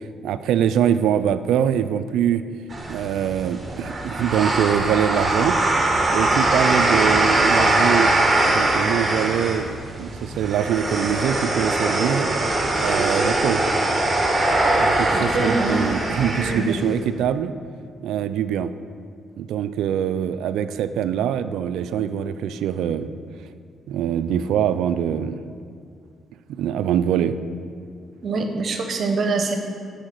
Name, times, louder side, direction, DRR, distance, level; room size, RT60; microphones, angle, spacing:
voice 1, 0.2-2.4 2.9-5.6 6.1-8.1 8.5-12.3 12.8-13.6 14.8-17.5 18.0-18.7 19.4-23.1 23.9-25.4 26.5-27.4, right 9 dB, 80° right, 12 dB, 0.4 m, -23 dB
sound 1, 2.7-17.0, right 2 dB, 30° right, 1.3 m, -21 dB
voice 2, 15.1-15.8 16.4-16.6 28.2-29.6, right 3 dB, 55° right, 5 dB, 1.0 m, -24 dB
8.9 x 4.9 x 7.3 m, 2.3 s
cardioid pair, 70°, 0 cm